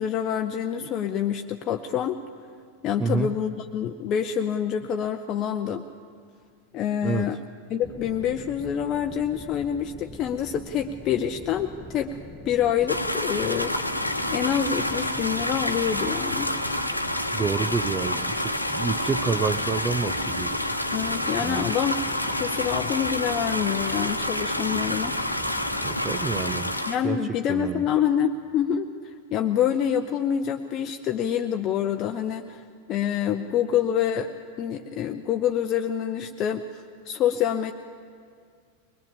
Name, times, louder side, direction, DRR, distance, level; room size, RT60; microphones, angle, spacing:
voice 1, 0.0-2.2 2.8-5.8 6.7-7.4 7.7-12.2 12.4-13.9 14.3-16.5 20.9-22.0 22.3-25.2 26.9-32.6 32.9-34.3 34.6-37.7, left 9 dB, 35° left, 5 dB, 0.7 m, -26 dB
voice 2, 3.0-3.3 7.0-7.3 17.3-20.6 21.4-21.7 25.8-26.7 27.0-27.2 27.5-27.8, right 5 dB, 20° right, 9 dB, 0.6 m, -28 dB
sound 1, 7.8-26.8, left 2 dB, 10° left, 1.0 m, -43 dB
sound 2, 12.9-27.0, left 1 dB, 90° left, 1.1 m, -28 dB
22.5 x 20.5 x 7.2 m, 2.2 s
figure-of-eight pair, 90°, 0 cm